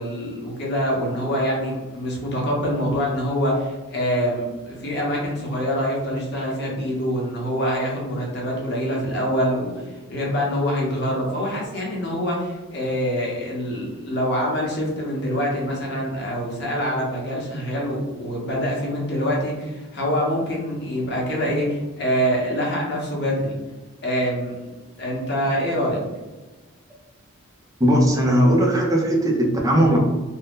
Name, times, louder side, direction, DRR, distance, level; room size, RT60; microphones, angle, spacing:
voice 1, 0.0-23.6 24.0-24.5 25.0-26.0, equal, 50° left, -3 dB, 0.9 m, -25 dB
voice 2, 27.8-30.0, equal, 15° right, -1 dB, 0.5 m, -18 dB
2.6 x 2.2 x 3.5 m, 1.2 s
head